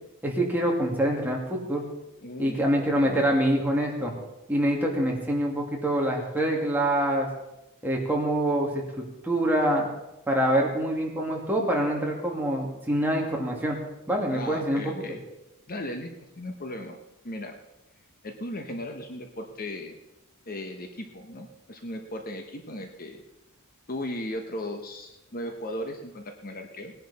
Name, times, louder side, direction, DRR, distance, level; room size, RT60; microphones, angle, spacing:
voice 1, 0.2-1.8 2.4-4.1 4.5-7.3 7.8-9.9 10.3-13.8 14.1-15.2, right 1 dB, 10° right, -2 dB, 2.5 m, -25 dB
voice 2, 2.2-2.6 3.0-3.3 14.3-15.2 15.7-17.0 17.2-17.6 18.2-20.0 20.5-23.2 23.9-26.9, left 1 dB, 40° left, 4 dB, 1.1 m, -37 dB
19.0 x 10.5 x 4.3 m, 0.94 s
head